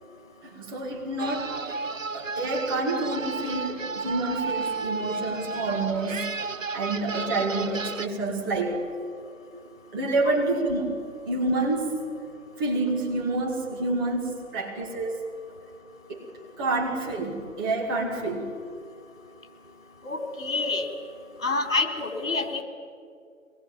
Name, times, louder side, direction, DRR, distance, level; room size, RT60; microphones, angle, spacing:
voice 1, 0.4-1.5 2.1-6.3 6.7-8.8 9.5-9.6 9.9-10.9 11.3-12.0 12.6-15.2 16.1-16.2 16.6-18.5, right 2 dB, 15° right, -3 dB, 2.2 m, -28 dB
sound 1, 1.2-8.1, right 4 dB, 65° right, 0.9 m, -33 dB
voice 2, 20.0-20.8 21.4-22.6, left 3 dB, 65° left, 4 dB, 3.7 m, -27 dB
23.5 x 20.0 x 7.5 m, 2.4 s
figure-of-eight pair, 150°, 41 cm